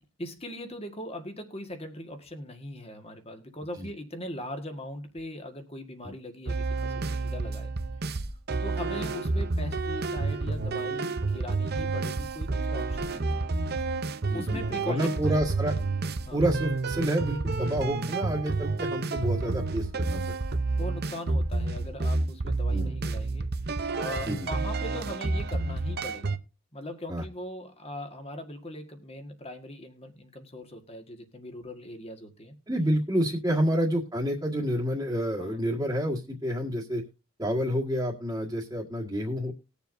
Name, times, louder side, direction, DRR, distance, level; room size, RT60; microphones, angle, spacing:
voice 1, 0.2-7.7 8.1-8.2 8.6-13.4 14.3-15.4 16.3-16.4 20.8-26.4 26.7-32.6 35.4-35.6, left 1 dB, 25° left, 6 dB, 1.7 m, -40 dB
sound 1, 6.5-26.4, right 3 dB, 45° right, 0.7 m, -30 dB
voice 2, 14.3-15.8 16.3-20.4 22.7-23.0 24.3-24.5 27.1-27.2 32.7-37.0 37.4-39.5, equal, 15° right, -4 dB, 1.7 m, -29 dB
20.5 x 6.9 x 2.7 m, 0.29 s
head